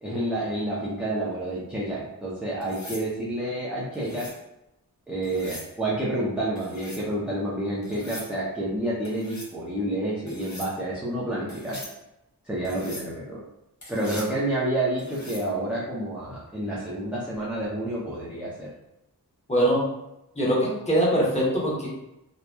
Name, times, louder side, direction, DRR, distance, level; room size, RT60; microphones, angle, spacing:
voice 1, 0.0-4.3 5.1-11.8 12.4-13.4 13.9-18.7, right 1 dB, 5° right, -8 dB, 0.5 m, -29 dB
sound 1, 2.6-3.1 3.9-4.4 5.2-5.7 6.6-7.0 7.8-8.3 9.0-9.5 10.3-10.7 11.5-11.9 12.6-13.1 13.8-14.3 15.0-15.5 17.4-17.7, left 1 dB, 45° left, 0.9 m, -42 dB
voice 2, 19.5-19.9 20.4-21.9, equal, 15° left, -5 dB, 0.9 m, -22 dB
2.8 x 2.2 x 2.2 m, 0.88 s
wide cardioid pair, 50°, 39 cm